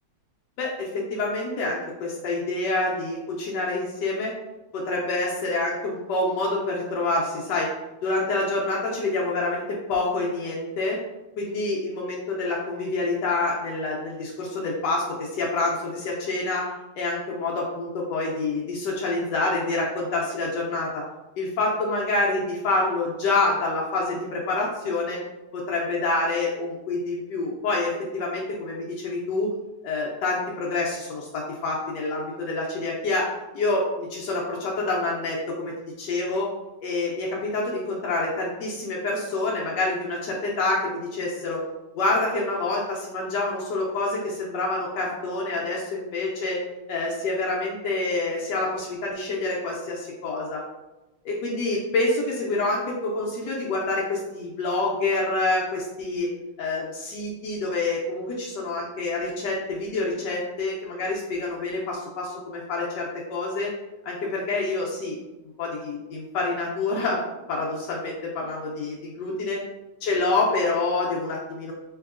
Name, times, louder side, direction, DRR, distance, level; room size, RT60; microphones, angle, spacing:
voice 1, 0.6-4.3 4.7-7.7 8.0-9.6 9.9-11.0 11.4-16.6 16.9-21.0 21.4-25.2 25.5-29.5 29.8-33.2 33.5-35.7 36.0-36.5 36.8-41.6 42.0-46.6 46.9-50.6 51.2-56.3 56.6-63.7 64.0-65.2 65.6-67.2 67.5-69.6 70.0-71.7, left 2 dB, 85° left, -3 dB, 0.9 m, -27 dB
3.3 x 2.9 x 2.4 m, 1.0 s
omnidirectional pair, 2.4 m